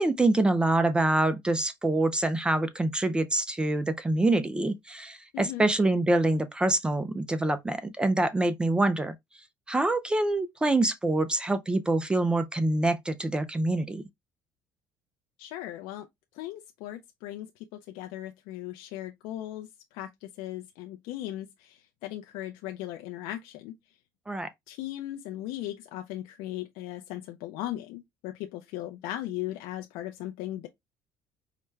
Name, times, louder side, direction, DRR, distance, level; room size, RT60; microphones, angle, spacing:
voice 1, 0.0-9.1 9.7-14.0 24.3-24.5, right 2 dB, 10° right, 0.4 m, -25 dB
voice 2, 5.3-5.7 15.4-16.1 16.3-17.5 17.9-23.8 24.7-30.7, left 14 dB, 85° left, 0.4 m, -38 dB
4.8 x 2.1 x 3.2 m
cardioid pair, 110°, 7 cm